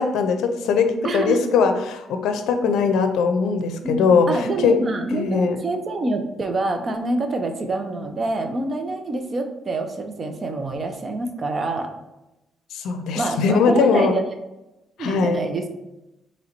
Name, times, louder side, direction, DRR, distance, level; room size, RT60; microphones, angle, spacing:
voice 1, 0.0-4.8 5.1-5.6 12.7-14.1 15.0-15.4, left 5 dB, 85° left, 7 dB, 0.5 m, -20 dB
voice 2, 1.0-1.4 3.8-11.9 13.1-14.3 15.0-15.7, right 2 dB, 40° right, 5 dB, 0.7 m, -26 dB
4.0 x 3.1 x 4.4 m, 0.96 s
cardioid pair, 90°, 0 cm